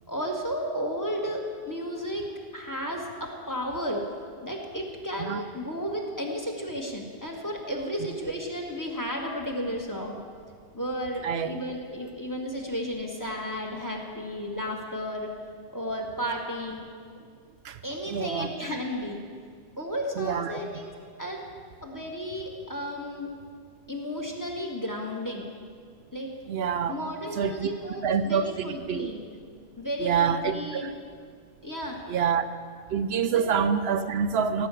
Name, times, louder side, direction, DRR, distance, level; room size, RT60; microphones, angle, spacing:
voice 1, 0.1-4.0 4.4-10.2 10.7-15.3 15.7-16.9 17.8-19.2 19.8-20.9 21.2-21.4 21.8-23.3 23.9-25.5 26.1-26.3 26.8-29.2 29.8-30.9 31.6-32.0 33.3-33.4, equal, 20° left, 0 dB, 1.4 m, -33 dB
voice 2, 18.1-18.5 20.2-20.6 26.5-26.9 27.4-27.7 28.0-29.1 30.0-30.9 32.1-32.5 32.9-34.7, right 7 dB, 75° right, 9 dB, 0.8 m, -26 dB
16.5 x 5.5 x 8.2 m, 2.1 s
omnidirectional pair, 1.1 m